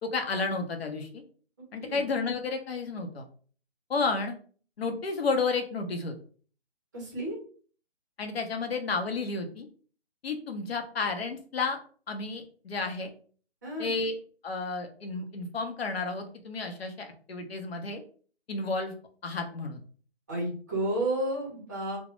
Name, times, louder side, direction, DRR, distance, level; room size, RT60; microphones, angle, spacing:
voice 1, 0.0-1.2 1.7-3.2 3.9-4.4 4.8-6.2 8.2-9.7 10.2-11.8 12.1-13.1 13.8-14.1 14.4-18.0 18.5-18.9 19.2-19.8, left 4 dB, 65° left, 5 dB, 0.7 m, -31 dB
voice 2, 6.9-7.4 13.6-13.9 20.3-22.0, right 1 dB, 20° right, -4 dB, 0.6 m, -31 dB
2.1 x 2.0 x 3.0 m, 0.43 s
hypercardioid pair, 160°, 32 cm